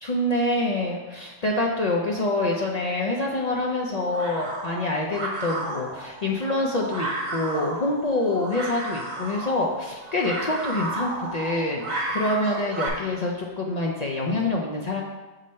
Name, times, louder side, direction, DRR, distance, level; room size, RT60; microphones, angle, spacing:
voice 1, 0.0-15.0, left 2 dB, 45° left, -2 dB, 0.5 m, -26 dB
sound 1, 3.0-12.9, right 2 dB, 70° right, 1.7 m, -33 dB
6.4 x 3.9 x 4.2 m, 1.2 s
omnidirectional pair, 1.3 m